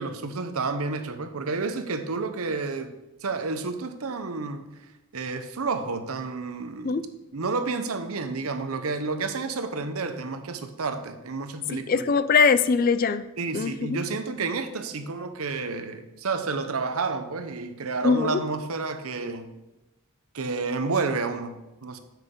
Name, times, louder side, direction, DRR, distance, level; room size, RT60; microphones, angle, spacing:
voice 1, 0.0-2.9 3.2-4.7 5.1-7.0 7.3-12.0 13.4-19.5 20.3-22.0, right 4 dB, 80° right, 9 dB, 0.8 m, -30 dB
voice 2, 11.7-13.2 13.5-14.0 18.0-18.4, left 5 dB, 40° left, 13 dB, 0.4 m, -22 dB
9.8 x 7.4 x 3.8 m, 1.0 s
head